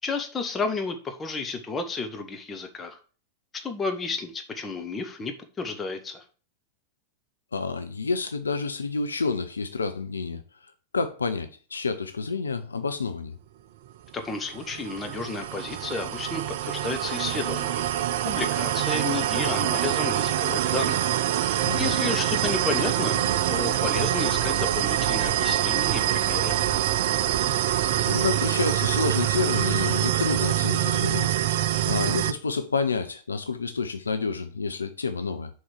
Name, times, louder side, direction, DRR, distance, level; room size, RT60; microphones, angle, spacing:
voice 1, 0.0-3.0 3.6-6.2 14.1-17.9 18.2-21.0 21.4-26.6, left 4 dB, 20° left, 1.7 m, -32 dB
voice 2, 7.5-10.4 10.9-13.4 21.6-21.9 28.0-31.4 31.8-35.5, left 4 dB, 75° left, 0.8 m, -29 dB
sound 1, 14.3-32.3, right 12 dB, 55° right, 0.5 m, -25 dB
6.5 x 5.5 x 6.7 m
figure-of-eight pair, 90°, 0 cm